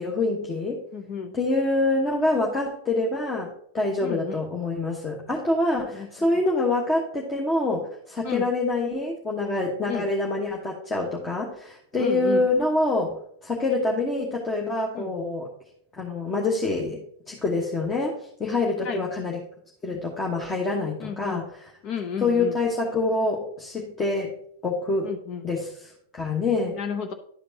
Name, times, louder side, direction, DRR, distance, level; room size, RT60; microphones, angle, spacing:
voice 1, 0.0-0.8 1.3-13.1 13.4-15.5 16.0-19.4 19.8-21.5 22.2-24.4 24.6-25.1 25.4-26.7, left 2 dB, 20° left, -2 dB, 1.2 m, -26 dB
voice 2, 0.9-1.3 4.0-4.4 5.9-6.1 8.2-8.5 9.9-10.1 12.0-12.5 14.9-15.1 18.8-19.0 21.0-21.4 21.8-22.6 25.0-25.4 26.7-27.1, left 7 dB, 45° left, 6 dB, 0.7 m, -32 dB
11.0 x 5.0 x 2.8 m, 0.66 s
hypercardioid pair, 100°, 0 cm